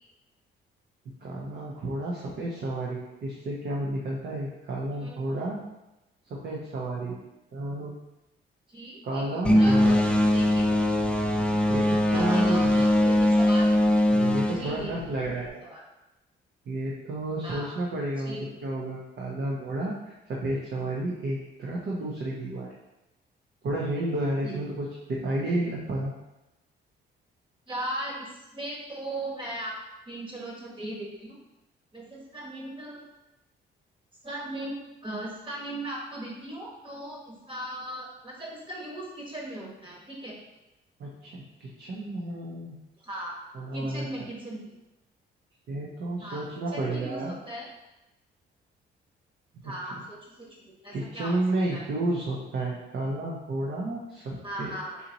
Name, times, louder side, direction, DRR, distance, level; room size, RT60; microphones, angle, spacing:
voice 1, 1.2-5.6 6.3-7.2 7.5-8.0 9.0-10.0 11.7-12.8 14.1-15.6 16.7-22.7 23.6-26.1 41.0-42.8 43.5-44.0 45.7-47.3 49.5-49.7 50.9-54.7, right 2 dB, 60° right, -3 dB, 0.8 m, -31 dB
voice 2, 8.7-10.8 12.1-13.7 14.5-15.1 15.6-15.8 17.4-17.8 18.2-18.8 24.4-24.6 27.7-29.7 30.1-31.4 31.9-33.0 34.2-40.4 43.0-43.4 43.7-44.7 46.2-46.4 46.7-47.7 49.6-51.4 51.7-51.9 54.4-55.0, right 1 dB, 25° right, -2 dB, 1.4 m, -38 dB
sound 1, 9.4-15.5, left 1 dB, 5° left, 0.4 m, -22 dB
4.2 x 2.9 x 4.0 m, 0.97 s
cardioid pair, 90°, 20 cm